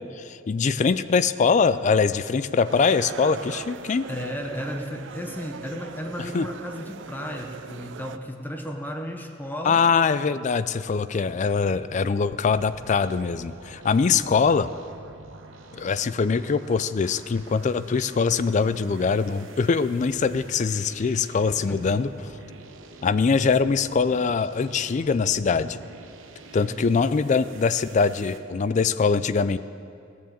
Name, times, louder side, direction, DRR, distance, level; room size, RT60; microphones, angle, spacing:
voice 1, 0.2-4.1 6.3-6.5 9.6-14.7 15.7-22.1 23.0-25.8 26.5-29.6, left 5 dB, 40° left, 14 dB, 0.3 m, -23 dB
sound 1, 2.6-8.2, right 6 dB, 65° right, 0.4 m, -40 dB
voice 2, 4.1-9.9 14.0-14.3 21.7-21.9 26.6-26.9, equal, 10° left, 4 dB, 0.8 m, -34 dB
sound 2, 12.4-28.4, right 2 dB, 80° right, 0.9 m, -46 dB
16.0 x 7.1 x 7.3 m, 2.5 s
head